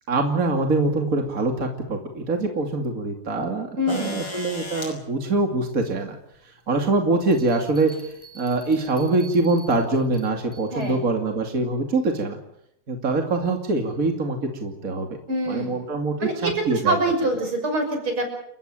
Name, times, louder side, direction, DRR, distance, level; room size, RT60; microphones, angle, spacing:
voice 1, 0.1-6.1 6.7-7.9 8.3-12.4 12.9-15.1 15.5-17.0, right 3 dB, 40° right, 3 dB, 3.0 m, -24 dB
voice 2, 3.8-4.2 10.7-11.0 15.3-15.8 16.2-18.2, right 1 dB, 75° right, 5 dB, 7.1 m, -25 dB
sound 1, 3.9-4.9 6.3-6.4 7.8-8.0 9.0-9.1, left 2 dB, 65° left, 6.7 m, -36 dB
Bell, 7.3-11.0, right 3 dB, 10° left, 7.7 m, -48 dB
29.5 x 15.0 x 9.1 m, 0.74 s
omnidirectional pair, 2.4 m